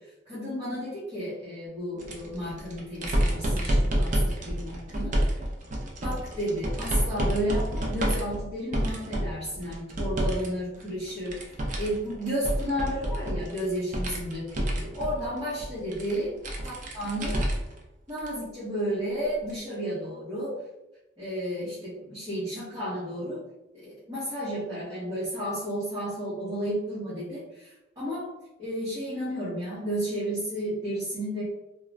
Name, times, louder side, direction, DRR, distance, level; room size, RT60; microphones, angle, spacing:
voice 1, 0.3-5.2 6.0-16.3 16.6-17.4 18.1-20.6 21.2-23.4 23.8-28.3 28.6-31.4, equal, 20° right, -13 dB, 1.0 m, -32 dB
sound 1, 2.0-10.5 10.8-17.8 18.2-18.3 19.5-19.6, right 1 dB, 40° right, 0.5 m, -29 dB
2.4 x 2.3 x 3.1 m, 0.95 s
head